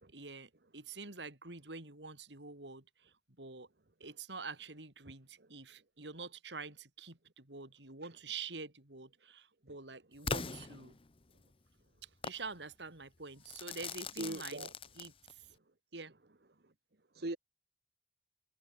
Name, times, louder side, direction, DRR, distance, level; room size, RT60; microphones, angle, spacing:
voice 1, 0.1-3.7 4.0-11.0 12.0-14.7 15.0-15.5 15.9-16.1, right 4 dB, 85° right, 3.9 m, -47 dB
Crackle / Fireworks, 10.3-11.4 12.2-12.5 13.5-15.5, left 5 dB, 30° left, 0.9 m, -41 dB
voice 2, 14.1-14.7 17.1-17.4, right 2 dB, 60° right, 1.3 m, -40 dB
head